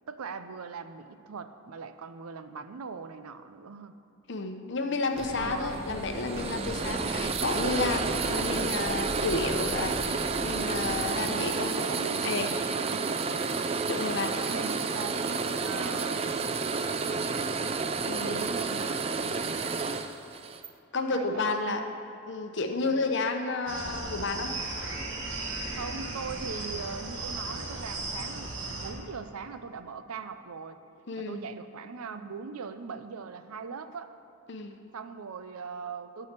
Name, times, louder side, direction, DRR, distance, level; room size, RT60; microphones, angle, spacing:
voice 1, 0.1-3.9 5.4-5.9 11.0-12.3 12.7-13.2 14.4-16.2 17.1-17.7 18.2-18.9 19.2-20.0 21.1-21.9 22.8-23.1 25.7-30.8 31.2-34.1 34.9-36.3, right 5 dB, 90° right, 10 dB, 0.5 m, -40 dB
voice 2, 4.3-11.8 12.2-12.5 13.9-14.3 18.1-18.5 20.9-21.8 22.3-24.5 31.1-31.5 34.5-34.8, left 3 dB, 55° left, 5 dB, 0.7 m, -31 dB
Bus, 5.1-11.1, equal, 5° right, 2.0 m, -39 dB
sound 1, 5.2-20.7, right 4 dB, 25° right, 0.3 m, -31 dB
sound 2, 23.7-28.9, right 2 dB, 60° right, 1.3 m, -36 dB
11.5 x 4.8 x 8.0 m, 2.5 s
head